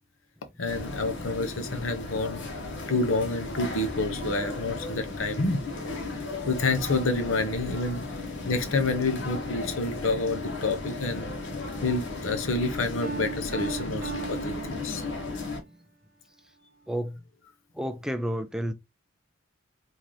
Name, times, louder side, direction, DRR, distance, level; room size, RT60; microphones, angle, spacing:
voice 1, 0.6-2.4 2.9-5.6 6.5-8.0 8.5-11.3 11.8-15.1, left 3 dB, 80° left, 0.8 m, -28 dB
sound 1, 0.7-15.6, left 2 dB, 65° left, 1.1 m, -35 dB
Piano, 13.0-15.5, right 6 dB, 45° right, 0.6 m, -37 dB
voice 2, 16.9-17.2 17.8-18.7, equal, 5° right, 0.3 m, -30 dB
3.8 x 2.8 x 3.1 m
head